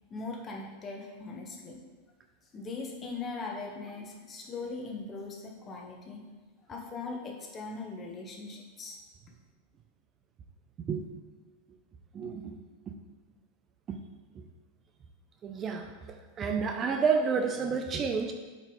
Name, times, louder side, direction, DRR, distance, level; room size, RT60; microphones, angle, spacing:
voice 1, 0.1-1.8 2.5-6.2 6.7-9.0, left 3 dB, 30° left, 0 dB, 1.3 m, -40 dB
voice 2, 12.1-12.6 13.9-14.0 14.3-14.4 15.4-15.9 16.4-18.3, right 5 dB, 30° right, 5 dB, 0.5 m, -29 dB
7.3 x 5.3 x 3.2 m, 1.3 s
hypercardioid pair, 110°, 0 cm